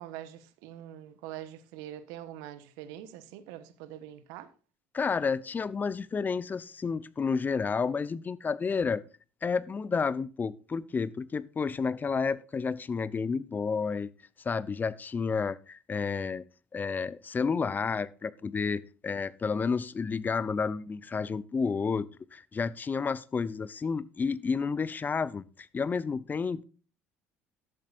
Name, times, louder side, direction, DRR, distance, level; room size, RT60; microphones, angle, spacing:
voice 1, 0.0-4.5, right 12 dB, 70° right, 1.2 m, -44 dB
voice 2, 4.9-9.0 9.4-14.1 14.4-16.4 16.7-25.4 25.7-26.6, left 5 dB, 30° left, 0.8 m, -31 dB
12.0 x 11.5 x 2.5 m
hypercardioid pair, 65°, 6 cm